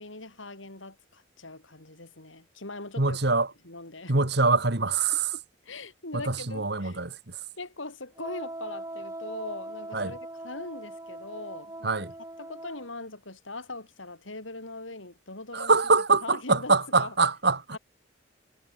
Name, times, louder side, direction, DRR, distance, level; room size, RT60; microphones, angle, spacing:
voice 1, 0.0-3.2 3.6-4.2 5.3-7.0 7.6-10.2 10.4-12.0 12.4-15.8 16.2-17.1 17.7-17.8, left 2 dB, 90° left, 7.7 m, -41 dB
voice 2, 3.0-3.5 4.1-5.4 6.1-7.4 9.9-10.1 11.8-12.1 15.5-17.8, right 3 dB, 60° right, 2.0 m, -24 dB
Wind instrument woodwind instrument, 8.2-12.9, right 1 dB, 15° right, 6.7 m, -41 dB
head